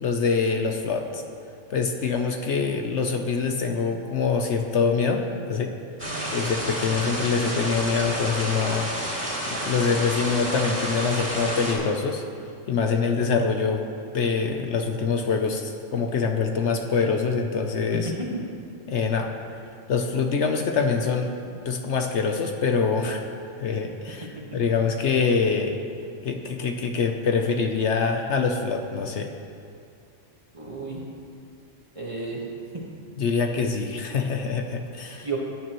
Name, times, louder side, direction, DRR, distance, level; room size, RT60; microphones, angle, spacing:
voice 1, 0.0-1.2 1.7-5.7 6.3-8.9 9.5-12.2 12.7-13.8 14.1-18.1 18.9-19.3 19.9-21.3 21.6-23.3 23.6-25.8 26.2-29.3 33.2-35.3, left 5 dB, 65° left, 4 dB, 1.0 m, -25 dB
sound 1, 6.0-11.7, right 1 dB, 10° right, 2.4 m, -30 dB
voice 2, 6.0-6.4 17.9-18.3 24.3-24.6 30.5-31.0 31.9-32.4 32.7-32.8 35.2-35.4, right 3 dB, 25° right, -3 dB, 1.5 m, -33 dB
17.5 x 9.1 x 3.0 m, 2.4 s
omnidirectional pair, 1.4 m